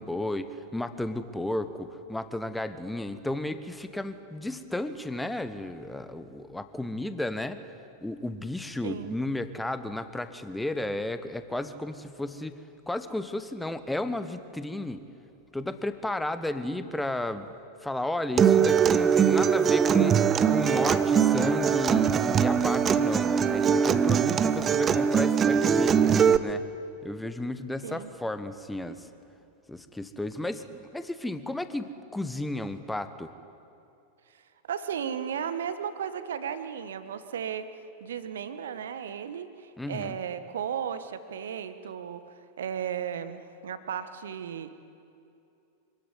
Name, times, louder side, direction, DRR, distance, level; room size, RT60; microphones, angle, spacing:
voice 1, 0.0-7.6 8.0-12.6 12.9-15.0 15.5-17.5 17.8-25.9 26.4-26.6 27.0-29.1 29.7-33.3 39.8-40.2, left 1 dB, 5° left, 11 dB, 1.3 m, -33 dB
voice 2, 8.8-9.2 27.8-28.1 34.7-37.7 38.0-42.2 42.6-44.7, right 8 dB, 65° right, 11 dB, 1.3 m, -35 dB
Acoustic guitar, 18.4-26.4, right 7 dB, 25° right, 1.0 m, -22 dB
25.5 x 17.0 x 10.0 m, 2.6 s
figure-of-eight pair, 90°, 0 cm